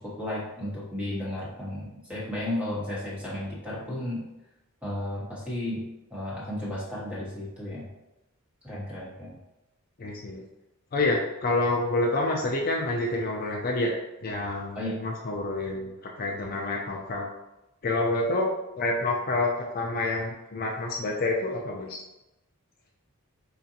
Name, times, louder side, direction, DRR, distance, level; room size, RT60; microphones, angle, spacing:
voice 1, 0.0-4.3 4.8-7.9 8.6-9.4 14.7-15.0, left 1 dB, 5° right, -7 dB, 1.2 m, -34 dB
voice 2, 10.0-10.4 10.9-13.9 14.2-17.3 17.8-18.5 18.8-22.0, left 2 dB, 40° left, -1 dB, 0.4 m, -28 dB
4.8 x 2.5 x 2.7 m, 0.95 s
head